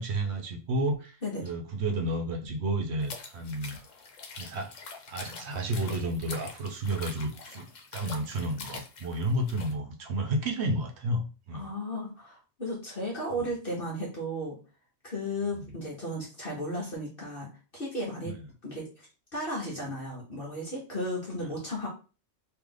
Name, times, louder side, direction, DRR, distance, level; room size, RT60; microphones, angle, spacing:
voice 1, 0.0-1.2 1.4-3.8 4.4-4.7 5.1-7.7 7.9-11.7 15.5-15.7 18.3-18.4, right 1 dB, 65° right, 4 dB, 1.0 m, -31 dB
sound 1, 3.0-9.7, left 4 dB, 85° left, 1.1 m, -44 dB
voice 2, 11.5-14.6 15.0-18.3 18.6-19.1 19.3-21.9, equal, 50° left, -4 dB, 1.3 m, -35 dB
3.2 x 2.9 x 3.8 m, 0.35 s
omnidirectional pair, 1.3 m